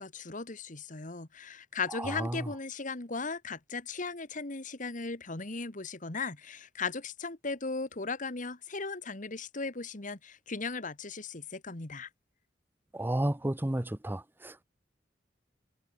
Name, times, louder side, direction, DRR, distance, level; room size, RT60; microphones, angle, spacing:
voice 1, 0.0-12.1, left 4 dB, 45° left, 1.8 m, -37 dB
voice 2, 2.0-2.5 12.9-14.6, right 1 dB, 10° right, 0.6 m, -32 dB
head